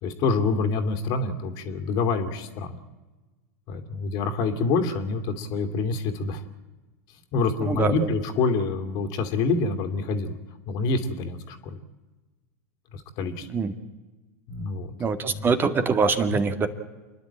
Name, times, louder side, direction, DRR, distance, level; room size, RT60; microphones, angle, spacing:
voice 1, 0.0-2.8 3.7-6.4 7.3-10.4 10.7-11.8 12.9-13.5 14.5-14.9 15.3-15.4 16.3-16.4, left 4 dB, 50° left, 5 dB, 2.7 m, -26 dB
voice 2, 7.6-8.1 13.5-13.7 15.0-16.7, right 5 dB, 25° right, 8 dB, 1.9 m, -24 dB
29.5 x 11.0 x 8.9 m, 1.2 s
hypercardioid pair, 100°, 9 cm